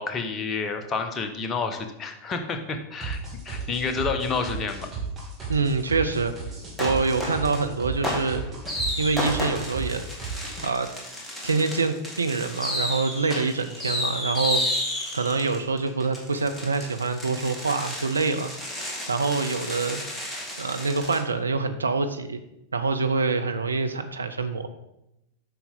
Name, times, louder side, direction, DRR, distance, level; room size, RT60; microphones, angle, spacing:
voice 1, 0.0-3.2 3.4-4.8, left 4 dB, 25° left, 6 dB, 1.0 m, -29 dB
sound 1, 3.0-10.6, right 5 dB, 15° right, 2.6 m, -34 dB
voice 2, 5.5-6.3 6.8-8.4 9.0-10.0 10.6-10.9 11.4-14.8 15.1-18.5 19.1-20.0 20.6-22.4 22.7-24.7, right 4 dB, 75° right, 8 dB, 0.5 m, -25 dB
sound 2, 6.8-7.6 8.0-21.2, left 1 dB, 5° left, 1.9 m, -32 dB
8.3 x 5.9 x 3.7 m, 0.86 s
figure-of-eight pair, 90°, 0 cm